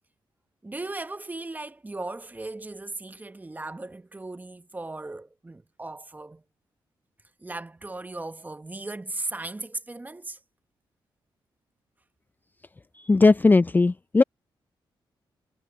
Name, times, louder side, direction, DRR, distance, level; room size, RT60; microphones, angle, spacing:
voice 1, 0.6-6.4 7.4-10.4, right 2 dB, 20° right, 1.1 m, -37 dB
voice 2, 13.1-14.2, left 3 dB, 20° left, 0.4 m, -18 dB
cardioid pair, 75°, 9 cm